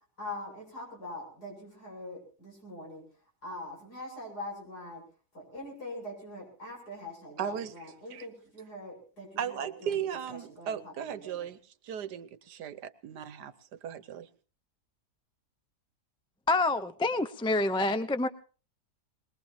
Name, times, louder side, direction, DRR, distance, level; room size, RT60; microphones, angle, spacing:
voice 1, 0.2-3.1 3.4-5.0 5.3-10.0 10.5-11.5, left 1 dB, 75° left, 0 dB, 7.8 m, -43 dB
voice 2, 7.4-8.3 9.4-11.6 11.8-13.5 13.8-14.3, right 9 dB, 90° right, 13 dB, 1.6 m, -36 dB
voice 3, 16.5-18.3, left 2 dB, 5° left, 10 dB, 0.4 m, -27 dB
22.0 x 21.5 x 2.8 m, 0.37 s
omnidirectional pair, 1.7 m